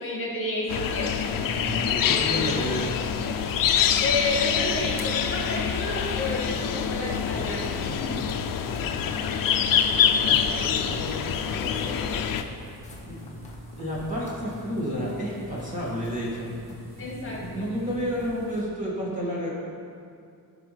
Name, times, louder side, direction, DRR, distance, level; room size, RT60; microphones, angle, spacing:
voice 1, 0.0-1.4 1.9-2.0 2.5-2.6 3.2-3.4 4.0-7.9 10.1-10.9 17.0-17.7, left 2 dB, 35° left, -4 dB, 1.9 m, -31 dB
sound 1, 0.7-12.4, left 8 dB, 60° left, 0.6 m, -25 dB
sound 2, 0.8-18.6, right 1 dB, 45° right, 1.3 m, -46 dB
voice 2, 1.4-2.9 7.8-8.4 9.2-9.4 10.2-12.2 13.1-13.2 13.8-16.5 17.4-19.5, equal, 20° right, -6 dB, 2.1 m, -32 dB
sound 3, 4.8-18.5, left 2 dB, 20° left, 1.4 m, -45 dB
16.0 x 6.1 x 3.4 m, 2.4 s
cardioid pair, 155°, 38 cm